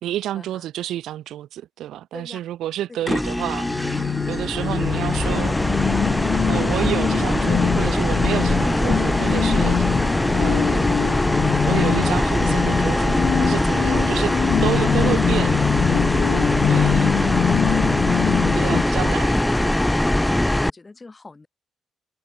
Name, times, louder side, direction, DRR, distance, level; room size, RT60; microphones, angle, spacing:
voice 1, 0.0-5.6 6.5-9.9 10.3-10.9 11.6-14.3 14.6-15.6 16.7-17.2 18.5-19.8, right 12 dB, 80° right, 1.1 m, -29 dB
sound 1, 3.1-20.7, left 1 dB, 10° left, 0.6 m, -21 dB
sound 2, 3.5-18.8, left 10 dB, 65° left, 0.3 m, -24 dB
voice 2, 18.5-19.2 20.3-21.5, left 3 dB, 25° left, 5.7 m, -44 dB
cardioid pair, 90°, 0 cm